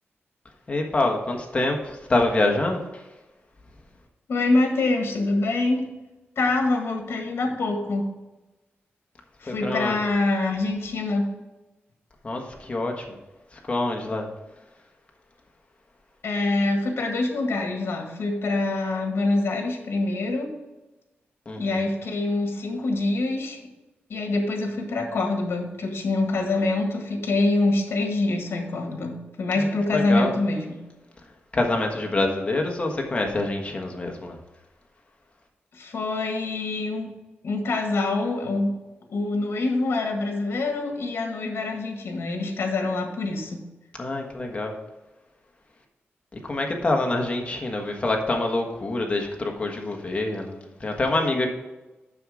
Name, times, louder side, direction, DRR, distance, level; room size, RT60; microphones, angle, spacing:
voice 1, 0.7-3.0 9.4-10.0 12.2-13.2 13.5-14.3 21.4-21.9 29.6-30.4 31.5-34.4 44.0-44.7 46.3-51.5, left 2 dB, 30° left, 2 dB, 1.4 m, -26 dB
voice 2, 4.3-5.8 6.3-8.1 9.4-11.3 16.2-20.5 21.6-23.6 24.1-30.8 35.7-37.1 37.4-38.7 39.1-43.6, left 2 dB, 70° left, 3 dB, 1.6 m, -25 dB
7.6 x 6.3 x 4.9 m, 1.1 s
wide cardioid pair, 135°, 4 cm